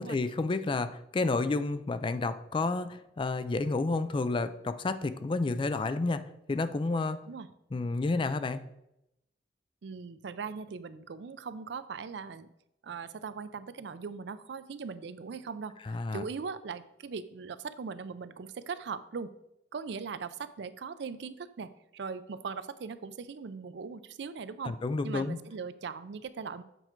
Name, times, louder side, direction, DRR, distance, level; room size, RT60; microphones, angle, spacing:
voice 1, 0.0-7.2 7.7-8.6 15.9-16.2 24.6-25.4, left 3 dB, 25° left, 12 dB, 0.3 m, -30 dB
voice 2, 9.8-12.5 12.8-19.3 19.7-24.8 25.0-26.6, right 5 dB, 65° right, 14 dB, 0.4 m, -40 dB
7.9 x 4.5 x 4.4 m, 0.84 s
head